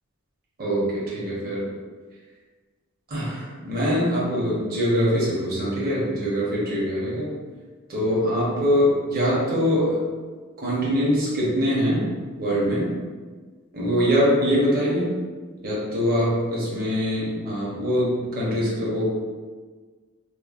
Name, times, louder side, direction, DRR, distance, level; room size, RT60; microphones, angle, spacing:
voice 1, 0.6-1.7 3.1-7.3 7.9-10.0 10.6-12.1 12.4-12.9 13.7-15.1 15.6-19.1, equal, 45° right, -6 dB, 0.8 m, -23 dB
2.9 x 2.0 x 2.4 m, 1.4 s
head